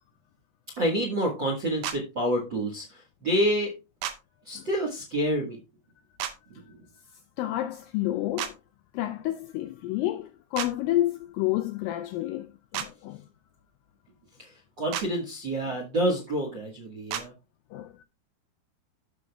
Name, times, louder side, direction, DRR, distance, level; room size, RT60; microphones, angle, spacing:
voice 1, 0.8-3.7 4.4-5.6 14.4-17.3, equal, 55° right, 1.2 m, -28 dB
sound 1, 1.8-2.0 4.0-4.2 6.2-6.3 8.4-8.5 10.5-10.7 12.7-12.9 14.9-15.1 17.1-17.3, right 10 dB, 90° right, 1.7 m, -31 dB
voice 2, 7.4-8.6 8.9-13.2 17.7-18.0, left 14 dB, 90° left, 2.0 m, -30 dB
14.5 x 6.3 x 2.3 m
omnidirectional pair, 4.6 m